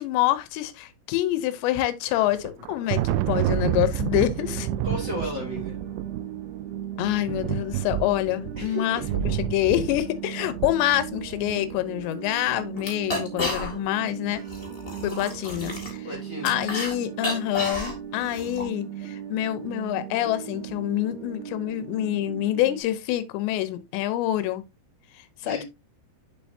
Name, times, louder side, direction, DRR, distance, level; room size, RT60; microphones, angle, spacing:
voice 1, 0.0-4.7 7.0-14.4 15.0-16.1 16.4-24.6 25.4-25.7, left 14 dB, 80° left, 2.9 m, -26 dB
Thunder, 2.3-11.7, right 13 dB, 90° right, 2.9 m, -29 dB
sound 1, 4.4-22.8, right 10 dB, 70° right, 2.9 m, -38 dB
voice 2, 4.8-5.8 8.6-9.0 16.0-16.5 25.4-25.6, equal, 55° right, 0.9 m, -34 dB
sound 2, 12.0-12.1 12.4-12.5 12.7-14.0 14.3-16.9 17.2-18.6, left 2 dB, 35° left, 0.9 m, -32 dB
8.0 x 6.8 x 2.7 m
omnidirectional pair, 5.2 m